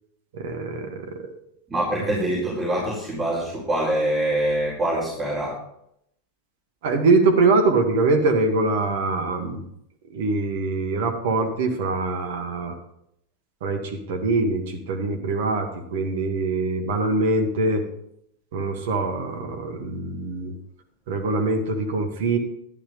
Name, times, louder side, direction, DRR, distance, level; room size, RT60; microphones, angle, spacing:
voice 1, 0.3-1.3 6.8-9.6 10.1-12.7 13.6-17.8 18.5-20.5 21.1-22.4, right 3 dB, 55° right, 5 dB, 1.7 m, -23 dB
voice 2, 1.7-5.6, right 1 dB, 10° right, -7 dB, 4.3 m, -24 dB
12.0 x 11.5 x 3.7 m, 0.75 s
figure-of-eight pair, 90°, 0 cm